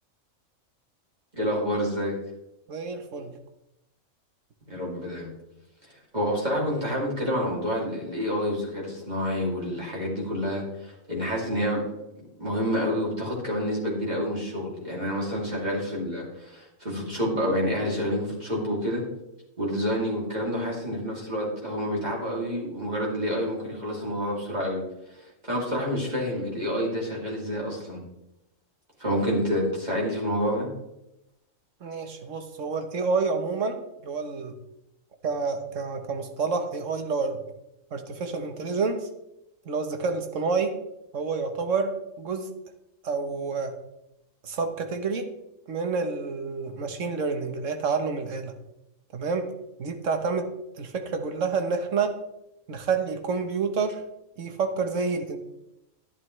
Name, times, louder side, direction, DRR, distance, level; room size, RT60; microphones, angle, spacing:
voice 1, 1.3-2.1 4.7-5.3 6.1-11.8 12.1-19.0 19.6-24.8 25.2-28.0 29.0-30.7, equal, 30° right, -3 dB, 2.8 m, -28 dB
voice 2, 2.7-3.4 31.8-34.6 35.2-37.4 37.9-39.1 39.6-40.8 41.1-42.5 43.0-43.8 44.4-45.3 45.7-48.6 49.1-49.5 49.8-52.2 52.7-54.0 54.4-55.4, right 4 dB, 70° right, 7 dB, 1.4 m, -28 dB
11.0 x 11.0 x 3.2 m, 0.88 s
omnidirectional pair, 1.4 m